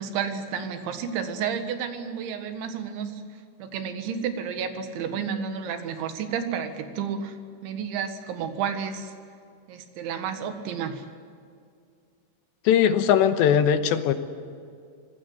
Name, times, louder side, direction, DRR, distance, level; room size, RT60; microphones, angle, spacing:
voice 1, 0.0-3.2 3.6-7.4 7.6-9.1 9.7-11.0, right 7 dB, 85° right, 7 dB, 4.0 m, -31 dB
voice 2, 12.7-14.1, left 9 dB, 80° left, 9 dB, 3.3 m, -20 dB
25.5 x 19.0 x 7.9 m, 2.3 s
omnidirectional pair, 5.2 m